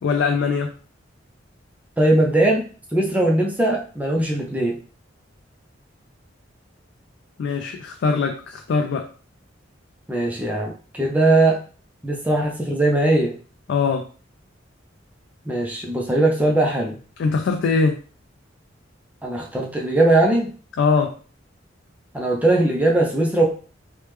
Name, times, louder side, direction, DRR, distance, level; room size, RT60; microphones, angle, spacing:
voice 1, 0.0-0.7 7.4-9.1 13.7-14.0 17.2-18.0 20.8-21.1, left 4 dB, 65° left, 4 dB, 0.3 m, -21 dB
voice 2, 2.0-2.6 2.9-4.8 10.1-11.6 12.0-13.3 15.5-17.0 19.2-20.5 22.1-23.4, right 2 dB, 10° right, -1 dB, 0.4 m, -20 dB
3.3 x 2.1 x 3.1 m, 0.39 s
head